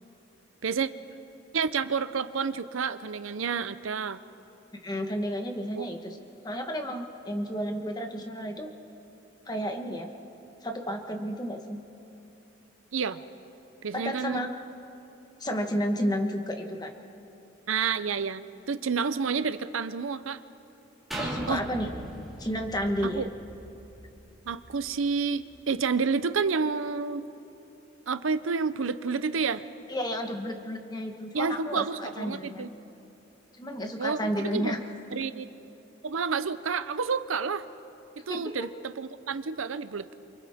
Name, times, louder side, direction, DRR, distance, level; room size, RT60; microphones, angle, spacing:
voice 1, 1.5-4.2 5.7-5.8 12.9-13.2 13.8-14.4 17.7-20.4 21.5-21.6 23.0-23.3 24.5-27.3 28.1-29.6 31.3-32.7 34.0-34.2 34.5-34.7 35.1-35.5 36.0-37.6 38.3-40.1, right 5 dB, 85° right, 12 dB, 0.7 m, -29 dB
voice 2, 4.8-6.2 6.4-8.7 9.5-10.1 10.6-11.8 13.9-14.5 15.4-16.9 21.2-21.9 22.4-23.2 29.9-32.7 33.5-34.8 38.3-38.7, equal, 20° left, 4 dB, 1.2 m, -32 dB
sound 1, 21.1-24.9 25.4-25.5, right 1 dB, ahead, 2.3 m, -38 dB
28.5 x 25.5 x 3.6 m, 2.9 s
head